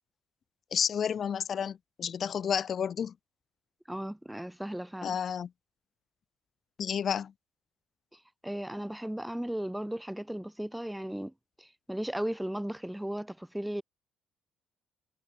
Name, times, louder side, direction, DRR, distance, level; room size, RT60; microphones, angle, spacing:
voice 1, 0.7-3.1 5.0-5.5 6.8-7.3, left 8 dB, 40° left, 1.4 m, -31 dB
voice 2, 3.9-5.2 8.4-13.8, right 1 dB, 5° right, 1.3 m, -36 dB
cardioid pair, 140°, 0 cm